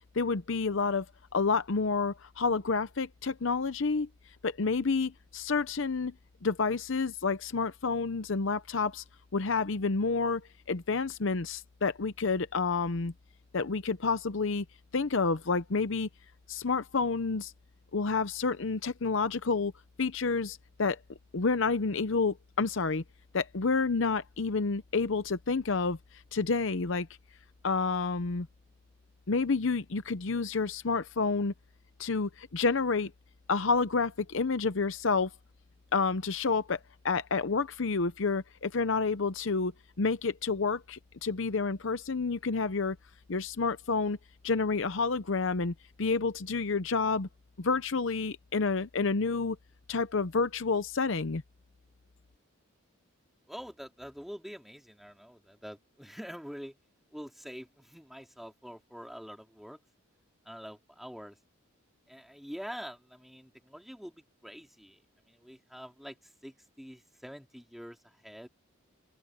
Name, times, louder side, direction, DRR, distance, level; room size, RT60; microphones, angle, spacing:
voice 1, 0.1-1.1 1.3-4.1 4.4-6.1 6.4-9.0 9.3-10.4 10.7-13.1 13.5-14.6 14.9-16.1 16.5-17.5 17.9-19.7 20.0-21.0 21.3-23.0 23.3-26.0 26.3-27.1 27.6-28.5 29.3-31.5 32.0-33.1 33.5-35.3 35.9-36.8 37.0-39.7 40.0-43.0 43.3-44.2 44.4-47.3 47.6-49.6 49.9-51.4, left 4 dB, 60° left, 0.7 m, -29 dB
voice 2, 53.5-56.7 57.1-59.8 60.4-61.4 62.1-65.0 65.3-68.5, equal, ahead, 2.9 m, -45 dB
open air
head